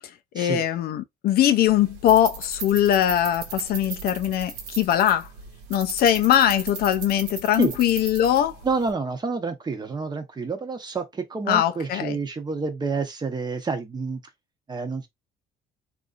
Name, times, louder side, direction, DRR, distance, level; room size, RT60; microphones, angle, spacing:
voice 1, 0.3-5.3 5.7-8.6 11.5-12.2, left 11 dB, 65° left, 0.5 m, -21 dB
sound 1, 1.7-8.9, right 6 dB, 90° right, 1.3 m, -37 dB
voice 2, 8.6-14.2 14.7-15.1, right 4 dB, 25° right, 0.8 m, -28 dB
3.0 x 2.6 x 2.4 m
cardioid pair, 110°, 17 cm